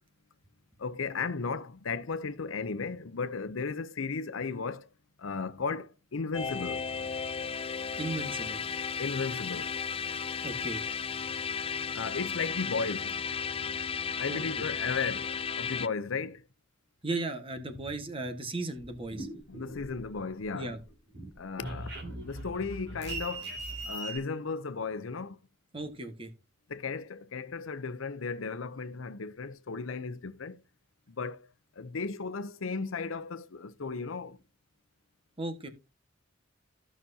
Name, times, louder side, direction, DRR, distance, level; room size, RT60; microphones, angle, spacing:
voice 1, 0.8-4.9 5.2-6.8 9.0-9.7 11.9-13.2 14.2-16.4 19.5-20.7 21.4-23.5 23.9-25.4 26.7-30.6 31.1-31.5 31.8-34.4, left 4 dB, 85° left, 0.7 m, -35 dB
sound 1, 6.3-15.9, left 6 dB, 30° left, 0.4 m, -34 dB
voice 2, 8.0-8.6 10.4-10.8 14.3-14.4 17.0-19.3 20.5-20.8 25.7-26.3 35.4-35.7, right 2 dB, 25° right, 1.5 m, -36 dB
sound 2, 18.8-20.5 20.8-24.2, right 2 dB, 55° right, 2.7 m, -40 dB
15.0 x 6.0 x 2.8 m
head